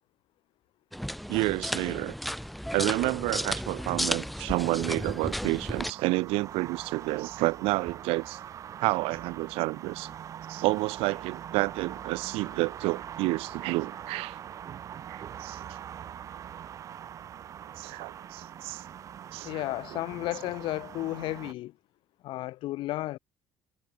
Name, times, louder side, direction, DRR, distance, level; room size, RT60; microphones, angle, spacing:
sound 1, 0.9-5.9, equal, ahead, 1.1 m, -33 dB
voice 1, 1.3-2.1 2.7-8.4 8.8-10.1 10.5-14.4 15.1-15.6 17.8-18.8 19.3-19.6 19.9-20.0, right 23 dB, 85° right, 0.5 m, -29 dB
sound 2, 4.5-21.5, right 9 dB, 35° right, 0.6 m, -43 dB
voice 2, 19.4-21.7 22.2-23.2, left 16 dB, 60° left, 0.7 m, -33 dB
cardioid pair, 165°, 10 cm